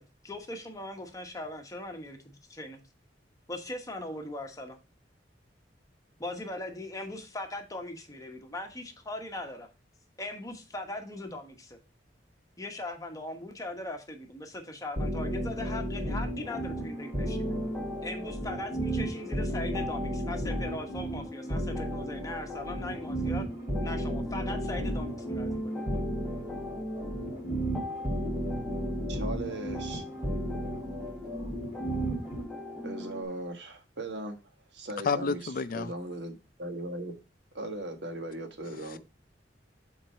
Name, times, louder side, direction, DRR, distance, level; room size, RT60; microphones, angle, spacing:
voice 1, 0.0-2.8 3.5-4.8 6.2-9.7 10.2-11.8 12.6-17.6 18.0-23.5 23.8-26.0, left 1 dB, 20° left, 1.2 m, -40 dB
sound 1, 15.0-32.4, right 1 dB, 25° right, 2.7 m, -34 dB
sound 2, 16.4-33.2, left 1 dB, ahead, 1.0 m, -40 dB
voice 2, 29.1-30.0 32.8-34.4 34.7-35.4 35.7-37.1 37.5-39.0, right 1 dB, 75° right, 1.4 m, -38 dB
voice 3, 35.0-35.9 38.9-39.0, left 5 dB, 50° left, 0.4 m, -30 dB
7.5 x 4.0 x 4.3 m
head